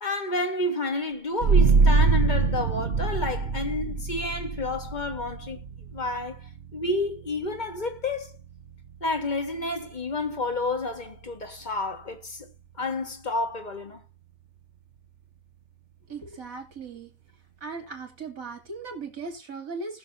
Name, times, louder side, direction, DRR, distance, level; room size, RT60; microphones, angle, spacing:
voice 1, 0.0-5.6 5.9-8.3 9.0-12.5 12.8-14.0, left 2 dB, 35° left, 1.8 m, -30 dB
sound 1, 1.4-12.7, right 4 dB, 55° right, 1.2 m, -27 dB
voice 2, 16.1-17.1 17.6-20.0, right 4 dB, 75° right, 3.3 m, -38 dB
20.0 x 6.8 x 2.6 m
omnidirectional pair, 1.5 m